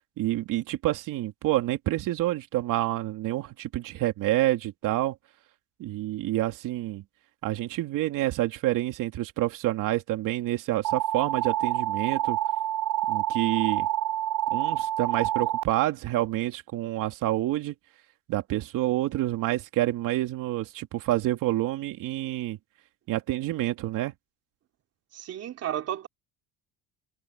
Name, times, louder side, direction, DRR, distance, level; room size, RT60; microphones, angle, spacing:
voice 1, 0.2-5.1 5.8-7.0 7.4-12.4 13.1-13.9 14.5-17.7 18.3-22.6 23.1-24.1, right 15 dB, 65° right, 3.0 m, -28 dB
sound 1, 10.8-15.6, right 13 dB, 80° right, 2.7 m, -27 dB
voice 2, 25.1-26.1, right 11 dB, 45° right, 3.2 m, -33 dB
cardioid pair, 150°, 35 cm